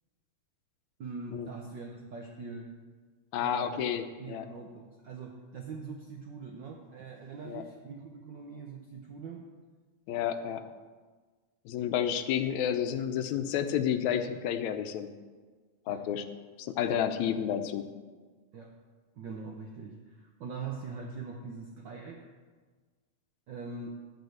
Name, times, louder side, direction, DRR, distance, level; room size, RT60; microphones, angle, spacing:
voice 1, 1.0-2.7 3.4-3.8 4.2-9.4 15.9-16.0 18.5-18.7 19.1-22.3 23.5-24.0, right 4 dB, 80° right, 1 dB, 1.0 m, -42 dB
voice 2, 3.3-4.5 7.4-7.6 10.1-10.6 11.7-15.1 15.9-16.2 16.6-17.8, left 9 dB, 80° left, 9 dB, 2.0 m, -30 dB
13.0 x 5.0 x 7.8 m, 1.4 s
omnidirectional pair, 3.3 m